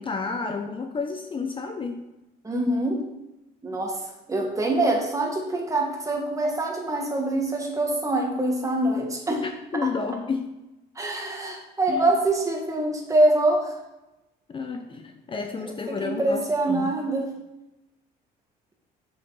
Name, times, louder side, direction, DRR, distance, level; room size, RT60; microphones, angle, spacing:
voice 1, 0.0-2.1 9.4-10.6 11.9-12.1 14.5-16.9, left 4 dB, 30° left, 6 dB, 0.7 m, -31 dB
voice 2, 2.4-3.0 3.6-9.4 9.8-9.9 10.9-13.7 15.6-17.3, right 2 dB, 20° right, 1 dB, 1.7 m, -25 dB
6.9 x 6.5 x 4.0 m, 0.98 s
cardioid pair, 110°, 17 cm